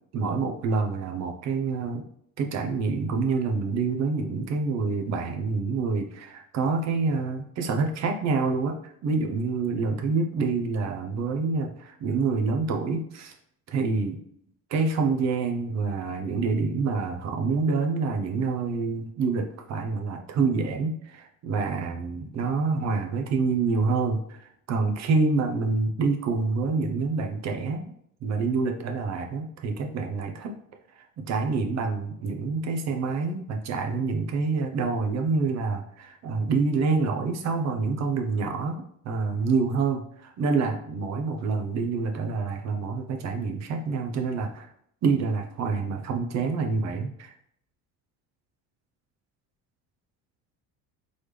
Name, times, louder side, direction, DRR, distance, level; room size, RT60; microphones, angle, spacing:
voice 1, 0.1-2.0 2.4-13.3 13.7-14.2 14.7-27.9 28.2-30.5 31.0-44.7 45.0-47.3, right 4 dB, 50° right, 4 dB, 0.8 m, -27 dB
3.9 x 3.4 x 3.3 m, 0.69 s
cardioid pair, 135°, 35 cm